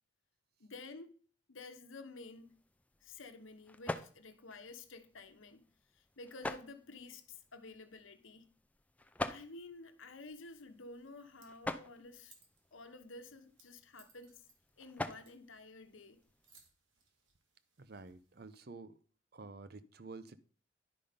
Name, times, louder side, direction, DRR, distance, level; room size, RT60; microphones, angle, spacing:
voice 1, 0.6-1.2 1.5-2.6 3.0-5.7 5.9-8.5 9.3-12.3 12.7-14.4 14.8-16.2, left 3 dB, 85° left, 1.1 m, -51 dB
sound 1, 2.2-16.6, left 2 dB, 5° left, 0.4 m, -47 dB
sound 2, 10.6-18.6, right 4 dB, 80° right, 2.4 m, -70 dB
voice 2, 17.8-19.0 19.3-20.4, right 3 dB, 50° right, 0.7 m, -50 dB
10.5 x 5.5 x 5.1 m
head